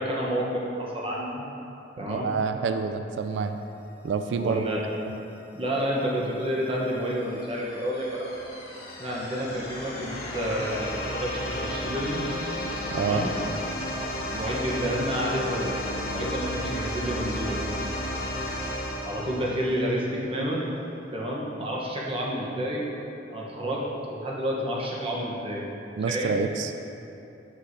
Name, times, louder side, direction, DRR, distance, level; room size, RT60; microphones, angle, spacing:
voice 1, 0.0-1.4 2.0-2.3 4.4-4.8 5.5-8.4 9.0-12.3 13.0-13.3 14.3-15.8 16.1-17.6 19.0-20.6 21.1-22.9 23.3-25.7 26.1-26.4, equal, 30° right, -4 dB, 1.0 m, -29 dB
voice 2, 2.1-3.6 4.0-4.6 12.9-13.3 26.0-26.7, right 5 dB, 80° right, 8 dB, 0.3 m, -27 dB
sound 1, 6.3-20.1, left 1 dB, 60° left, 1.1 m, -33 dB
7.5 x 6.2 x 2.7 m, 2.8 s
head